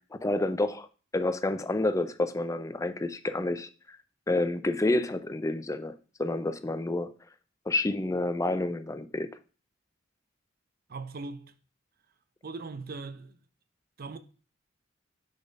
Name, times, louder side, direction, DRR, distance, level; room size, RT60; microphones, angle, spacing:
voice 1, 0.2-0.9 1.1-4.0 4.3-7.1 7.7-9.3, left 2 dB, 15° left, 0.4 m, -29 dB
voice 2, 10.9-11.5 12.4-13.4 14.0-14.2, right 3 dB, 50° right, 0.7 m, -39 dB
6.9 x 4.1 x 5.2 m
head